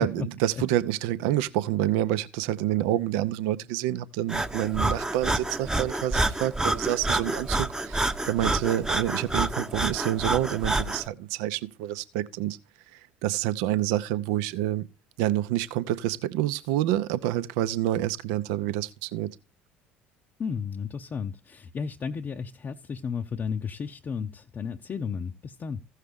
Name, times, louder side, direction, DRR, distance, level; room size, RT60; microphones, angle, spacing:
voice 1, 0.0-12.6 12.9-14.9 15.2-19.3, right 13 dB, 65° right, 0.6 m, -28 dB
Breathing, 4.3-11.1, right 2 dB, 10° right, 0.8 m, -28 dB
voice 2, 20.4-25.8, left 6 dB, 35° left, 0.7 m, -33 dB
15.0 x 6.5 x 3.6 m
figure-of-eight pair, 60°, 6 cm